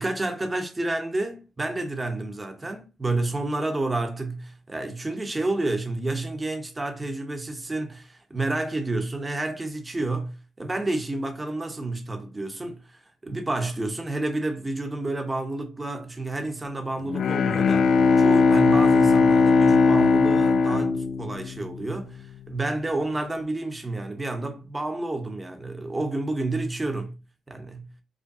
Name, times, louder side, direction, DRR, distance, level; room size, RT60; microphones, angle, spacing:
voice 1, 0.0-27.1 27.5-27.9, right 2 dB, 20° right, 0.9 m, -30 dB
Bowed string instrument, 17.1-21.9, left 4 dB, 60° left, 0.3 m, -19 dB
4.9 x 2.2 x 2.7 m
cardioid pair, 90°, 0 cm